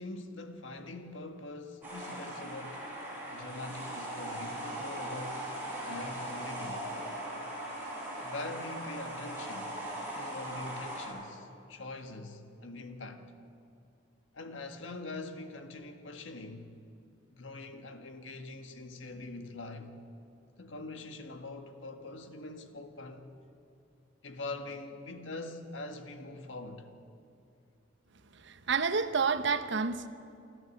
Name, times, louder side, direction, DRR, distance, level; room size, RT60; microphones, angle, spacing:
voice 1, 0.0-2.9 3.3-6.9 8.2-9.8 10.1-13.3 14.3-16.7 17.3-19.9 20.6-23.3 24.2-26.9, left 2 dB, 70° left, 1.7 m, -43 dB
sound 1, 1.8-11.1, right 1 dB, 10° right, 7.5 m, -39 dB
voice 2, 28.5-30.1, right 5 dB, 65° right, 1.0 m, -29 dB
29.0 x 12.0 x 8.4 m
head